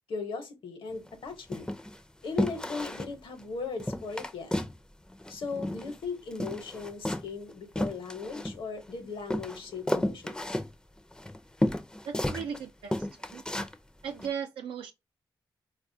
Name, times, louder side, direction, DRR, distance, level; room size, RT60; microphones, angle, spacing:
voice 1, 0.1-1.7 2.2-4.5 5.3-10.6, left 4 dB, 70° left, 0.9 m, -38 dB
sound 1, 0.9-1.1 1.5-2.0 2.4-3.1 3.4-3.5 3.8-4.8 5.1-6.0 6.3-8.9 9.3-12.6 12.9-13.8 14.2-14.3, left 1 dB, 10° left, 0.4 m, -32 dB
voice 2, 12.0-13.4 14.0-14.9, right 7 dB, 85° right, 0.4 m, -37 dB
4.0 x 2.3 x 2.6 m
cardioid pair, 70°, 9 cm